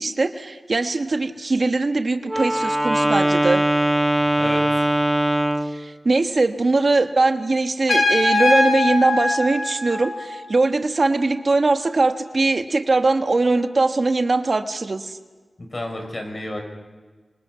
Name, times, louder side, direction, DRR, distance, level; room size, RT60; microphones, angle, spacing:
voice 1, 0.0-3.6 5.6-15.2, right 3 dB, 55° right, 7 dB, 1.3 m, -21 dB
Wind instrument woodwind instrument, 2.2-5.8, right 1 dB, 15° right, 1.2 m, -20 dB
voice 2, 4.2-4.9 15.6-16.6, left 1 dB, 45° left, 3 dB, 6.5 m, -31 dB
Trumpet, 7.9-10.5, left 2 dB, 75° left, 6.9 m, -21 dB
27.5 x 26.0 x 5.7 m, 1.4 s
wide cardioid pair, 60°, 0 cm